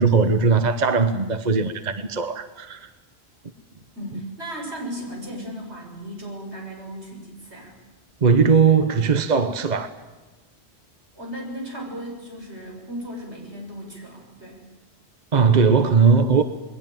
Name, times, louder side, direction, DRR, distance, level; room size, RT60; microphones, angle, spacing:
voice 1, 0.0-2.9 8.2-9.9 15.3-16.4, right 5 dB, 45° right, 10 dB, 1.2 m, -19 dB
voice 2, 3.9-7.8 11.2-14.7, equal, 80° right, 0 dB, 7.2 m, -36 dB
28.0 x 20.5 x 9.2 m, 1.2 s
omnidirectional pair, 1.1 m